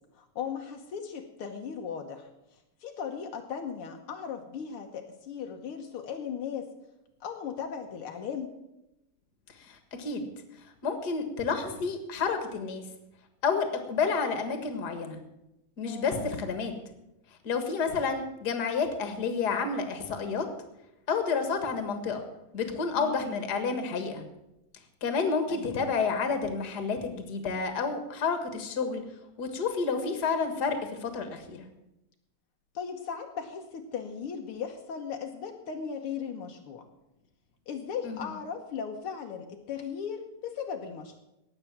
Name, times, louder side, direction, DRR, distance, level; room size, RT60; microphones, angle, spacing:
voice 1, 0.1-2.3 2.8-6.7 7.2-8.5 15.8-16.4 22.9-23.4 25.5-25.9 32.7-36.9 37.7-41.2, left 7 dB, 85° left, 3 dB, 1.2 m, -37 dB
voice 2, 9.6-10.3 10.8-12.8 13.4-15.2 15.8-16.7 17.4-20.4 21.1-22.2 22.5-24.3 25.0-29.0 29.4-31.7 38.0-38.3, left 5 dB, 45° left, 7 dB, 1.4 m, -30 dB
18.0 x 6.9 x 7.3 m, 0.89 s
omnidirectional pair, 4.0 m